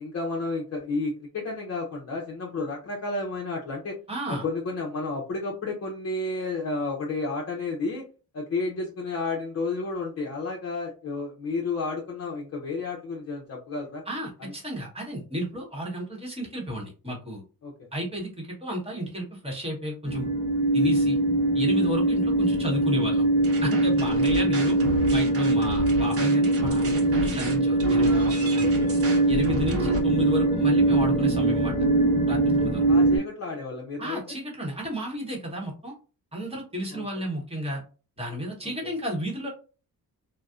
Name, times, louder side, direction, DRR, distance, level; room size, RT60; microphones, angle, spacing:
voice 1, 0.0-4.0 4.3-8.0 8.3-14.0 14.4-14.5 17.6-17.7 28.6-29.2 32.9-34.3 36.9-37.1 38.6-38.7, left 3 dB, 40° left, -3 dB, 0.6 m, -31 dB
voice 2, 4.1-4.4 14.1-17.4 17.9-20.3 20.7-21.2 21.5-23.3 23.6-24.8 25.1-28.7 29.3-31.7 32.3-32.9 34.0-35.9 36.3-37.8 38.2-39.5, equal, 15° right, -2 dB, 1.0 m, -32 dB
sound 1, 20.1-33.2, right 2 dB, 15° left, 0.9 m, -22 dB
sound 2, 23.4-30.0, right 1 dB, 40° right, 0.7 m, -34 dB
3.9 x 2.0 x 2.3 m, 0.35 s
wide cardioid pair, 170°, 37 cm